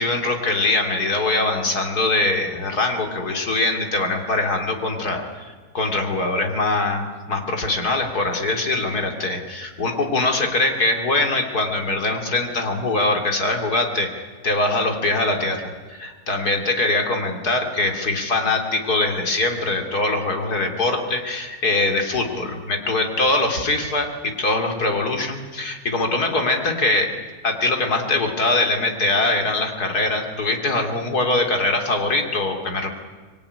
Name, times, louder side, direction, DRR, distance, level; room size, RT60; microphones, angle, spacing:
voice 1, 0.0-14.1 14.4-27.1 27.4-32.9, left 2 dB, 80° left, 4 dB, 3.5 m, -22 dB
25.0 x 22.0 x 9.8 m, 1.4 s
omnidirectional pair, 1.6 m